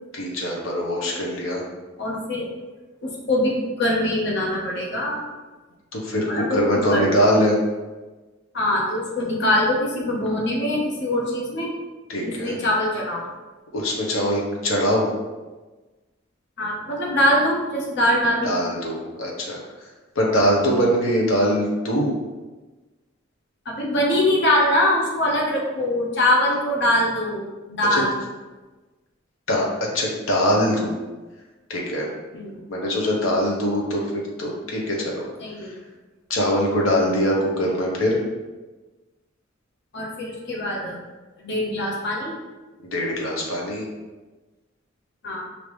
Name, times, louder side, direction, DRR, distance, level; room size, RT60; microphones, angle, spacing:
voice 1, 0.1-1.6 5.9-7.6 12.1-12.6 13.7-15.1 18.4-19.9 20.1-22.1 27.9-28.0 29.5-30.9 31.7-32.1 32.7-34.1 34.4-35.3 35.6-35.7 36.3-38.2 42.9-43.9, equal, 90° left, -2 dB, 1.0 m, -22 dB
voice 2, 2.0-2.5 3.0-5.2 6.3-7.2 8.5-11.7 12.2-13.3 16.6-18.5 20.6-20.7 23.6-28.1 32.3-32.6 35.4-35.8 39.9-41.0 41.4-42.3 45.2-45.4, left 1 dB, 60° left, -3 dB, 1.0 m, -23 dB
5.0 x 2.8 x 3.1 m, 1.2 s
head